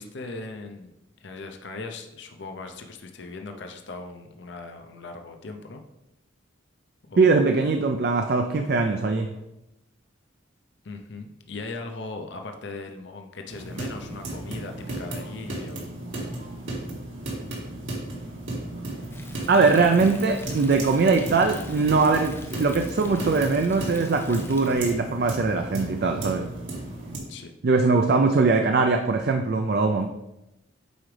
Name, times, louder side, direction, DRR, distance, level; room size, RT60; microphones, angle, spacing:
voice 1, 0.0-5.8 7.0-7.4 10.8-15.9 27.3-27.5, left 3 dB, 65° left, 5 dB, 0.6 m, -39 dB
voice 2, 7.2-9.3 19.5-26.5 27.6-30.1, right 4 dB, 50° right, 5 dB, 0.4 m, -21 dB
sound 1, 13.5-27.2, right 1 dB, 80° right, 1.9 m, -35 dB
Thunder, 19.1-24.9, left 3 dB, 10° left, 0.4 m, -44 dB
8.0 x 5.0 x 3.3 m, 0.92 s
head